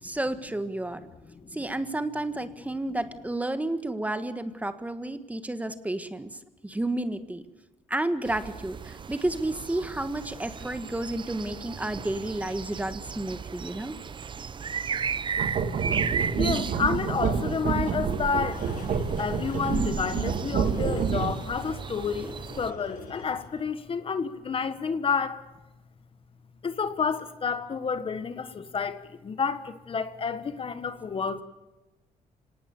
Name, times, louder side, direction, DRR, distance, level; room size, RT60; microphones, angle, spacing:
voice 1, 0.0-1.0 1.5-6.3 6.6-7.4 7.9-14.0, right 1 dB, 10° right, 1.5 m, -31 dB
sound 1, 8.2-22.7, right 6 dB, 35° right, 0.7 m, -36 dB
sound 2, 11.5-11.6 12.1-12.4 12.8-12.9 14.0-14.1 15.1-15.2 16.1-16.2 18.3-23.8, left 4 dB, 75° left, 7.3 m, -44 dB
sound 3, 15.4-21.6, right 6 dB, 65° right, 1.9 m, -28 dB
voice 2, 16.4-18.7 19.0-25.4 26.6-31.4, left 5 dB, 40° left, 1.4 m, -30 dB
26.0 x 18.5 x 7.2 m
cardioid pair, 95°, 14 cm